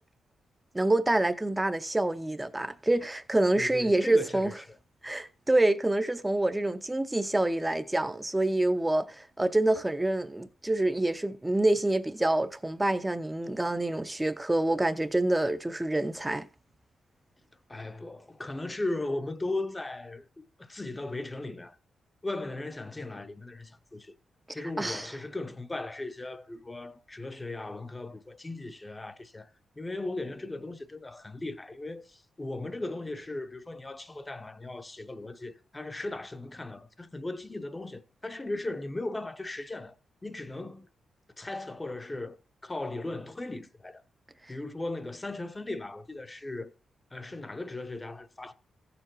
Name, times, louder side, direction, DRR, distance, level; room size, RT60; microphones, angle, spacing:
voice 1, 0.7-4.5 5.0-16.5 24.6-25.1, right 1 dB, 15° right, 0.6 m, -27 dB
voice 2, 3.5-4.5 17.7-21.8 22.2-24.2 24.5-29.5 29.8-40.0 40.2-40.9 41.4-44.0 44.5-46.7 47.1-48.5, left 2 dB, 20° left, 0.7 m, -37 dB
15.0 x 6.9 x 3.0 m
cardioid pair, 80°, 0 cm